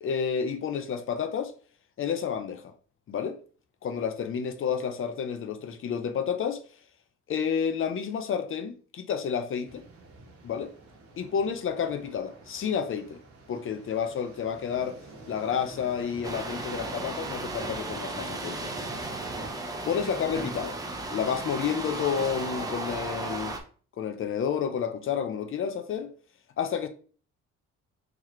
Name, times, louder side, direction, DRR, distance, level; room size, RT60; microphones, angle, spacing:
voice 1, 0.0-1.5 2.0-2.7 3.1-3.4 3.8-6.6 7.3-9.8 10.4-10.7 11.2-13.2 13.5-15.0 15.3-18.7 19.9-20.8 21.1-23.5 24.0-26.1 26.6-26.9, left 7 dB, 45° left, 0.6 m, -30 dB
sound 1, 9.7-19.5, right 2 dB, 45° right, 1.2 m, -48 dB
sound 2, 16.2-23.6, right 2 dB, 10° right, 0.5 m, -35 dB
4.0 x 3.0 x 3.1 m
cardioid pair, 120°, 31 cm